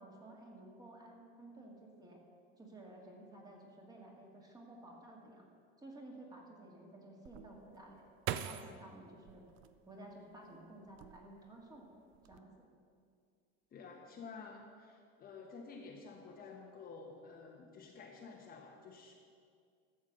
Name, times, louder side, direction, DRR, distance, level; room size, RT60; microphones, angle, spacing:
voice 1, 0.0-2.2 2.6-5.5 5.8-8.0 8.3-9.4 9.9-11.9 12.2-12.7, right 1 dB, 10° right, -1 dB, 2.0 m, -54 dB
sound 1, 7.2-10.3 10.9-11.6 11.9-12.4, right 10 dB, 40° right, 0.6 m, -44 dB
voice 2, 13.7-19.1, left 4 dB, 30° left, 0 dB, 1.2 m, -51 dB
13.0 x 7.1 x 7.9 m, 2.2 s
supercardioid pair, 145°, 31 cm